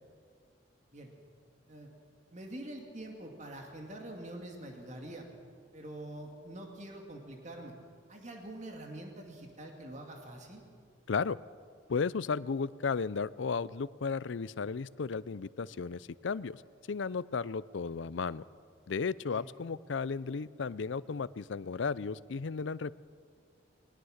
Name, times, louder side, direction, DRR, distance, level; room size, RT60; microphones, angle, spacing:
voice 1, 2.3-5.3 5.7-7.7 8.1-10.6 19.3-19.5, right 1 dB, 35° right, 2 dB, 2.3 m, -45 dB
voice 2, 11.1-11.4 11.9-16.6 16.9-18.4 18.9-22.9, left 5 dB, 70° left, 19 dB, 0.5 m, -34 dB
21.0 x 19.5 x 6.5 m, 2.1 s
head